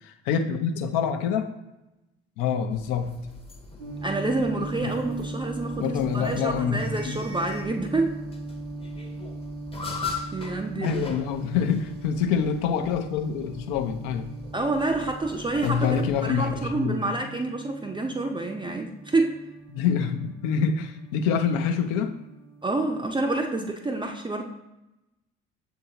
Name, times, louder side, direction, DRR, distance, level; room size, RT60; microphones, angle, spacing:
voice 1, 0.0-1.5 2.4-3.1 4.8-4.9 5.8-7.2 10.8-14.3 15.6-17.0 19.7-22.2, left 7 dB, 65° left, 7 dB, 0.6 m, -26 dB
sound 1, 2.7-16.7, left 4 dB, 15° left, 0.7 m, -42 dB
sound 2, 3.8-23.3, right 2 dB, 80° right, 0.9 m, -39 dB
voice 2, 4.0-8.1 10.3-11.0 14.5-19.4 22.6-24.4, right 2 dB, 15° right, 3 dB, 0.5 m, -28 dB
6.8 x 2.7 x 2.8 m, 0.97 s
figure-of-eight pair, 50°, 34 cm